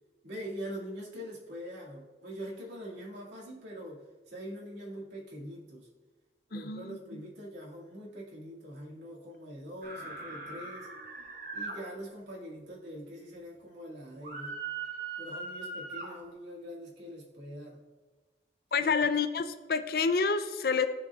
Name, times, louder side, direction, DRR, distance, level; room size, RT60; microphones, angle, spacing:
voice 1, 0.2-5.9 6.5-10.9 11.5-14.6 15.2-17.8 18.8-18.9, equal, 80° right, -5 dB, 2.1 m, -43 dB
voice 2, 6.5-7.0 18.7-20.9, left 5 dB, 55° left, 10 dB, 0.5 m, -28 dB
sound 1, 9.8-11.7 14.2-16.1, right 4 dB, 55° right, 2.3 m, -40 dB
14.0 x 5.3 x 2.4 m, 1.3 s
head